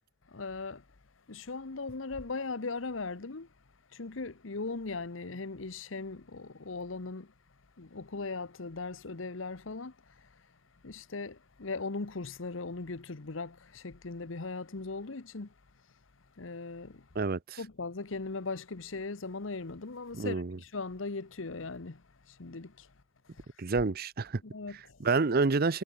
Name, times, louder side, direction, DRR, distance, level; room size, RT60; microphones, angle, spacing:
voice 1, 0.3-0.8 1.3-3.5 3.9-7.3 7.8-10.3 10.8-15.5 16.4-17.1 17.6-22.9 23.3-23.5 24.5-25.0, left 3 dB, 85° left, 1.1 m, -39 dB
voice 2, 17.1-17.6 20.1-20.6 23.6-24.4 25.0-25.8, right 4 dB, 50° right, 0.7 m, -28 dB
head